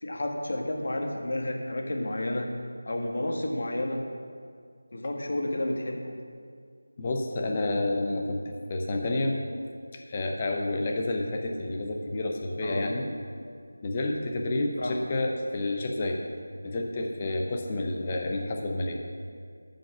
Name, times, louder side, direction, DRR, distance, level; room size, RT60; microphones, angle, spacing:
voice 1, 0.0-2.5 2.8-4.0 4.9-6.2 12.6-12.9 14.8-15.0, left 1 dB, 50° left, 2 dB, 1.4 m, -31 dB
voice 2, 7.0-9.4 9.9-13.1 13.8-16.2 16.6-19.0, left 2 dB, 20° left, 2 dB, 0.7 m, -29 dB
13.5 x 5.2 x 6.1 m, 2.2 s
figure-of-eight pair, 175°, 0 cm